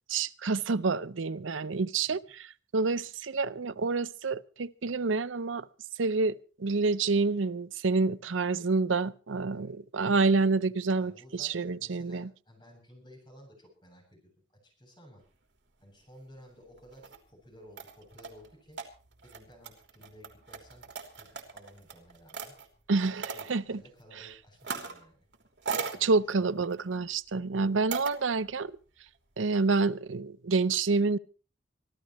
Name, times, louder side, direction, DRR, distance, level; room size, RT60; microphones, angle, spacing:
voice 1, 0.1-5.7 6.0-12.3 22.9-23.8 26.0-28.7 29.4-31.2, right 4 dB, 90° right, 0.7 m, -28 dB
voice 2, 11.0-14.3 14.6-15.2 15.8-18.8 19.2-20.9 21.1-22.5 23.2-25.2 25.9-26.6 27.6-27.8, equal, 25° left, 7.9 m, -55 dB
sound 1, 16.8-17.2 17.8-22.7 23.2-23.5 24.6-25.0 25.3-26.0 26.6-27.0 27.9-28.1, right 5 dB, 65° right, 3.2 m, -38 dB
25.0 x 14.0 x 3.1 m
head